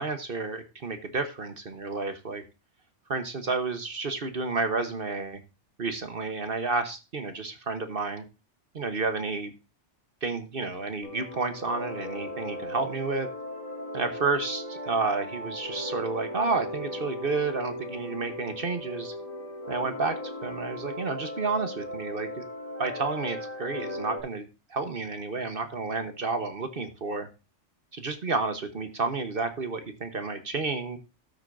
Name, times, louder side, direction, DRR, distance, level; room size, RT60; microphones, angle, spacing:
voice 1, 0.0-2.4 3.1-5.4 5.8-8.2 8.7-9.5 10.2-13.3 13.9-19.1 19.7-20.1 20.4-22.4 22.8-27.3 27.9-31.0, right 3 dB, 50° right, 8 dB, 1.4 m, -31 dB
sound 1, 11.0-24.2, left 1 dB, 35° left, 4.8 m, -37 dB
13.0 x 8.2 x 2.6 m, 0.28 s
omnidirectional pair, 1.2 m